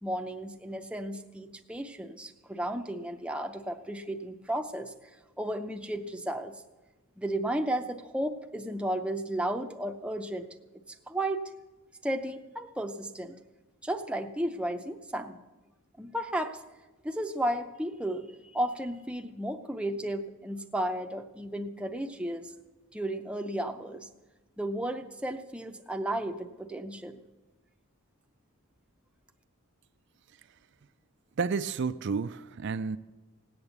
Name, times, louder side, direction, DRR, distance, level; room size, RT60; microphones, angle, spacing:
voice 1, 0.0-4.9 5.4-6.6 7.2-10.5 10.9-11.5 12.0-13.4 13.8-15.4 16.0-16.6 17.0-22.5 22.9-24.1 24.6-27.2, right 1 dB, 5° right, 5 dB, 0.6 m, -33 dB
voice 2, 31.4-33.0, right 5 dB, 50° right, 12 dB, 0.4 m, -31 dB
17.5 x 8.8 x 8.1 m, 1.2 s
head